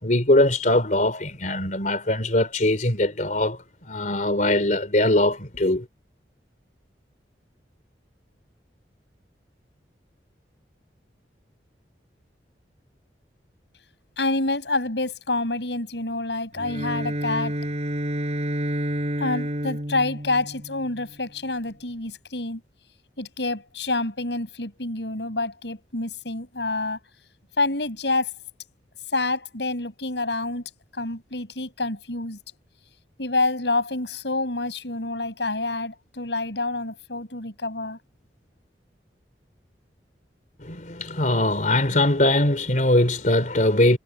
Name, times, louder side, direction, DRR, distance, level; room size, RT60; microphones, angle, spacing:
voice 1, 0.0-3.6 3.9-5.9 40.6-44.0, left 1 dB, 45° left, 3.7 m, -21 dB
voice 2, 14.2-17.6 19.2-22.6 23.2-27.0 27.6-28.3 29.1-30.6 30.9-32.4 33.2-38.0, left 2 dB, 80° left, 6.5 m, -27 dB
Bowed string instrument, 16.5-21.2, right 1 dB, 40° right, 6.0 m, -29 dB
head